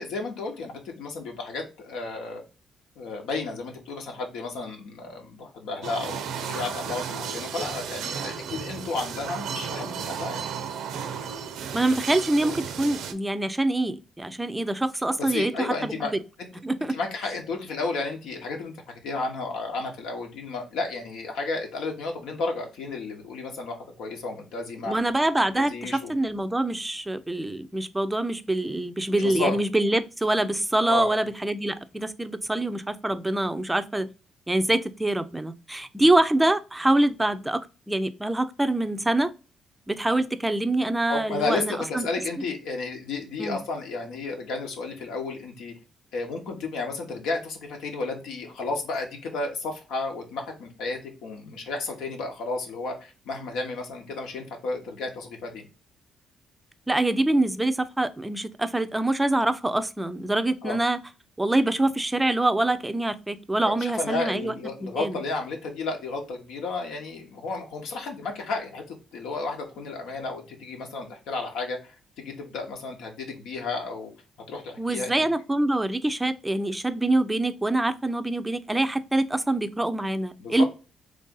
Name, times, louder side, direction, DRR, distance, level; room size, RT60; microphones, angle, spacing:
voice 1, 0.0-2.4 3.0-10.5 12.4-12.5 15.2-16.5 16.9-18.7 19.0-24.9 25.6-26.1 29.2-29.6 30.9-31.2 35.9-36.0 41.1-45.7 46.1-55.7 60.6-60.8 63.6-74.1 74.5-75.3 80.4-80.6, left 3 dB, 85° left, 1.1 m, -32 dB
sound 1, 5.8-13.1, right 7 dB, 80° right, 0.5 m, -34 dB
voice 2, 11.7-16.2 16.6-16.9 24.9-34.1 34.5-37.6 37.9-39.3 39.9-42.1 43.4-43.6 56.9-61.0 61.4-64.5 64.8-65.2 74.8-80.6, right 1 dB, 10° right, 0.4 m, -25 dB
3.3 x 2.7 x 3.7 m
cardioid pair, 90°, 0 cm